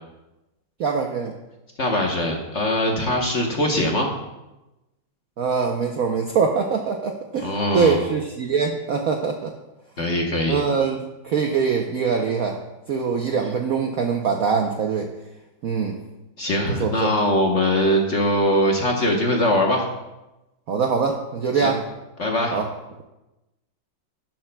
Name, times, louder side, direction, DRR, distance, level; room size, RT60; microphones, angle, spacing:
voice 1, 0.8-1.3 5.4-9.5 10.5-12.6 12.9-15.1 15.6-16.0 16.8-17.1 20.7-21.8 22.5-22.7, right 5 dB, 65° right, 3 dB, 0.8 m, -23 dB
voice 2, 1.8-4.1 7.4-8.0 10.0-10.6 16.4-19.9 21.6-21.7 22.2-22.6, left 1 dB, 45° left, 0 dB, 1.0 m, -21 dB
11.5 x 11.0 x 2.2 m, 1.0 s
omnidirectional pair, 2.2 m